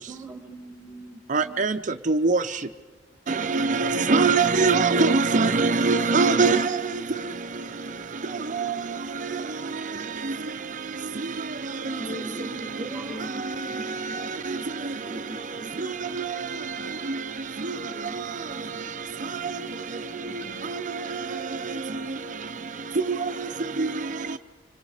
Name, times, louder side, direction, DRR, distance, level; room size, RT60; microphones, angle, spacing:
voice 1, 0.1-1.5 12.1-12.4 12.8-14.7 15.0-15.7, right 2 dB, 5° right, 2.0 m, -41 dB
voice 2, 1.3-1.8 2.1-2.4 3.4-6.7 8.6-8.7 23.1-23.2 23.8-23.9, right 4 dB, 40° right, 0.6 m, -21 dB
voice 3, 11.8-14.2 15.0-15.3 18.0-19.0 19.4-20.6, left 1 dB, 35° left, 4.7 m, -44 dB
26.0 x 25.5 x 4.9 m
head